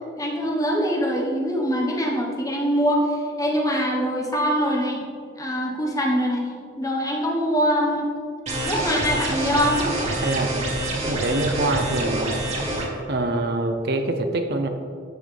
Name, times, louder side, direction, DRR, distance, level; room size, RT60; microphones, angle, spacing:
voice 1, 0.2-5.0 5.4-6.5 6.8-8.1 8.6-9.9, equal, 20° left, -1 dB, 1.2 m, -23 dB
sound 1, 8.5-12.9, right 1 dB, 35° right, 1.9 m, -27 dB
voice 2, 10.2-10.5 11.0-12.4 13.1-14.7, right 2 dB, 55° right, 6 dB, 0.7 m, -24 dB
13.5 x 6.3 x 3.4 m, 2.3 s
head